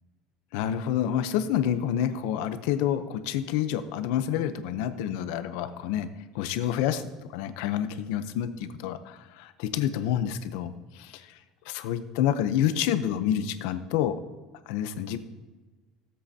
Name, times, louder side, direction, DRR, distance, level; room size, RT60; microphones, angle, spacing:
voice 1, 0.5-6.1 6.3-7.0 7.3-11.3 11.7-14.2 14.7-15.2, left 10 dB, 75° left, 10 dB, 0.7 m, -28 dB
17.0 x 7.7 x 2.8 m, 1.3 s
cardioid pair, 155°, 0 cm